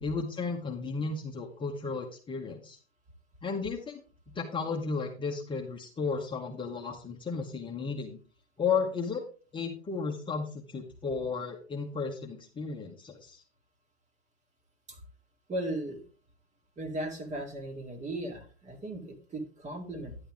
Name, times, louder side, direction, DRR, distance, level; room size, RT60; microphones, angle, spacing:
voice 1, 0.0-2.8 3.4-4.0 4.3-8.2 8.6-9.2 9.5-13.4, left 5 dB, 15° left, 0 dB, 1.2 m, -34 dB
voice 2, 15.5-16.0 16.8-20.2, right 1 dB, 20° right, 5 dB, 2.2 m, -37 dB
10.5 x 8.5 x 3.6 m, 0.37 s
hypercardioid pair, 120°, 33 cm